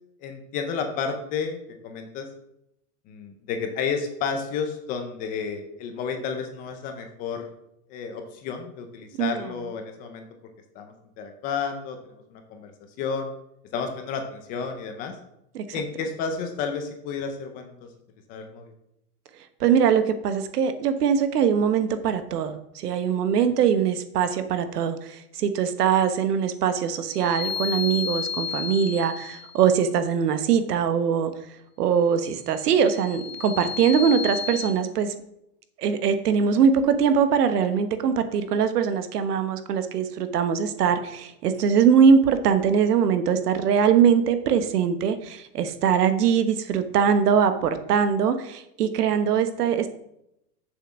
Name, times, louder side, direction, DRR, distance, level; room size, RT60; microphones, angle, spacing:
voice 1, 0.2-2.3 3.1-7.5 7.9-10.2 10.7-12.7 13.0-13.3 13.7-15.2 15.7-17.9 18.3-18.7, left 5 dB, 20° left, 6 dB, 0.6 m, -31 dB
voice 2, 19.6-31.3 31.8-35.1 35.8-49.9, right 7 dB, 80° right, 10 dB, 1.3 m, -22 dB
sound 1, 27.1-29.6 32.6-34.7, left 7 dB, 60° left, 2.0 m, -32 dB
7.0 x 6.1 x 6.2 m, 0.81 s
supercardioid pair, 160°, 46 cm